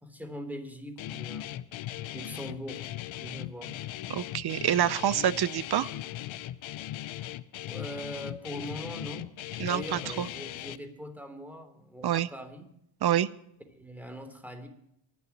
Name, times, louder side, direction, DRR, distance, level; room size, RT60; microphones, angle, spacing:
voice 1, 0.0-1.6 2.1-2.8 3.2-3.7 7.6-9.3 9.6-12.7 13.7-14.7, equal, 5° right, 7 dB, 3.4 m, -41 dB
Guitar, 1.0-10.8, left 13 dB, 70° left, 0.8 m, -39 dB
voice 2, 4.1-5.9 9.6-10.3 12.0-12.3 13.0-13.3, right 10 dB, 50° right, 18 dB, 0.8 m, -27 dB
24.5 x 12.0 x 3.0 m, 0.76 s
cardioid pair, 85°, 49 cm